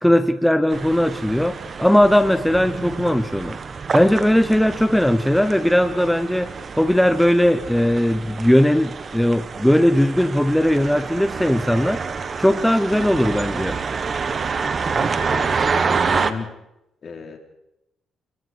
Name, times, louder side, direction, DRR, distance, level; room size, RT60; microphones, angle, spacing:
voice 1, 0.0-3.6 3.9-12.0 12.4-13.8, equal, 5° left, 11 dB, 0.9 m, -18 dB
sound 1, 0.7-16.3, right 5 dB, 40° right, 1.5 m, -27 dB
voice 2, 14.9-16.5 17.0-17.4, left 5 dB, 50° left, 3 dB, 4.3 m, -34 dB
29.0 x 22.5 x 4.8 m, 0.87 s
cardioid pair, 90°, 0 cm